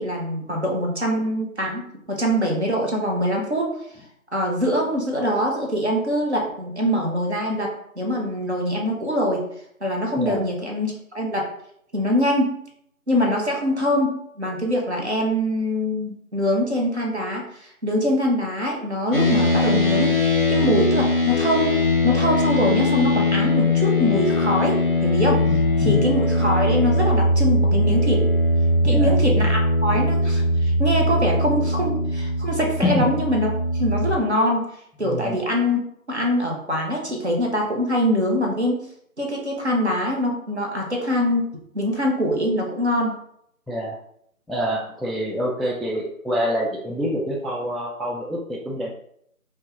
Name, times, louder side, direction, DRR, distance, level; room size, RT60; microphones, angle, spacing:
voice 1, 0.0-1.8 2.1-3.8 4.3-9.4 9.8-11.5 11.9-12.6 13.1-21.8 22.0-25.5 25.8-28.3 28.8-33.5 33.8-34.7 35.0-35.8 36.1-38.8 39.2-41.5 41.7-43.2, equal, 50° right, 0 dB, 0.6 m, -23 dB
sound 1, 19.1-34.2, left 1 dB, 40° left, 0.6 m, -20 dB
voice 2, 25.5-26.0 28.8-29.1 32.8-33.1 35.0-35.4 43.7-44.0 44.5-48.9, left 1 dB, ahead, -3 dB, 0.3 m, -26 dB
3.2 x 2.2 x 2.3 m, 0.70 s
figure-of-eight pair, 175°, 43 cm